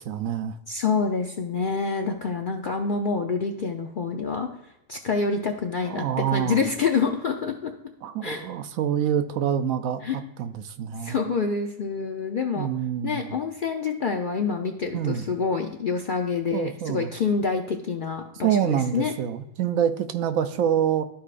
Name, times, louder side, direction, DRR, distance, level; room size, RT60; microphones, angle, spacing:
voice 1, 0.0-0.6 5.8-6.6 8.0-11.2 12.6-13.3 14.9-15.2 16.5-17.1 18.4-21.0, right 9 dB, 75° right, 9 dB, 1.0 m, -26 dB
voice 2, 0.7-4.5 4.9-7.7 8.2-8.5 10.0-10.2 11.0-12.7 13.0-19.1, left 5 dB, 60° left, 3 dB, 0.5 m, -27 dB
12.5 x 4.7 x 2.5 m, 0.85 s
omnidirectional pair, 1.5 m